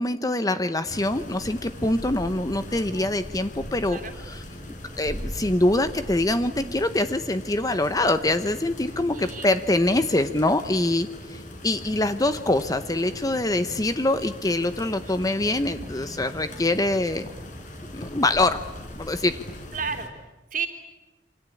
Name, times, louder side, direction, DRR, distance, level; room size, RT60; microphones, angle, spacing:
voice 1, 0.0-4.0 4.3-4.4 5.0-17.3 17.9-18.6 19.0-19.4, left 2 dB, 20° left, 10 dB, 0.9 m, -24 dB
sound 1, 0.9-20.1, equal, 40° left, 4.6 m, -40 dB
voice 2, 9.1-9.5 15.0-15.4 19.7-20.1 20.5-20.7, right 5 dB, 45° right, 5 dB, 3.1 m, -32 dB
27.5 x 25.0 x 8.5 m, 1.1 s
head